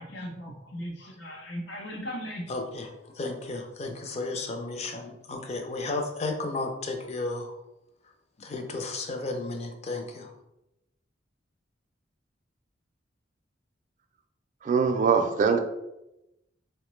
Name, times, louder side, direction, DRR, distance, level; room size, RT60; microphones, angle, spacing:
voice 1, 0.0-2.4, equal, 90° left, -1 dB, 0.7 m, -37 dB
voice 2, 2.5-7.5 8.4-10.3, left 2 dB, 35° left, 4 dB, 0.4 m, -33 dB
voice 3, 14.6-15.6, right 5 dB, 45° right, 6 dB, 0.3 m, -22 dB
3.8 x 2.1 x 3.0 m, 0.91 s
head